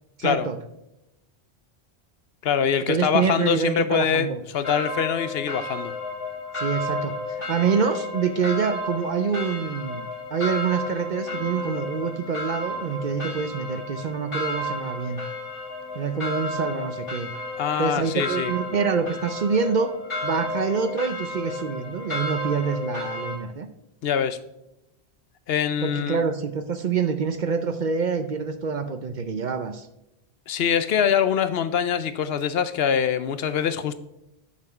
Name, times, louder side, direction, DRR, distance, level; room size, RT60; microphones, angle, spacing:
voice 1, 0.2-0.6 2.9-4.4 6.5-15.2 15.9-17.3 17.8-19.9 20.2-23.7 25.8-29.9, right 6 dB, 50° right, 9 dB, 0.6 m, -26 dB
voice 2, 2.4-5.9 17.6-18.5 24.0-24.4 25.5-26.2 30.5-33.9, left 8 dB, 70° left, 12 dB, 0.8 m, -24 dB
sound 1, 4.6-23.4, left 2 dB, 25° left, 2.4 m, -32 dB
7.3 x 5.9 x 4.6 m, 0.87 s
omnidirectional pair, 1.1 m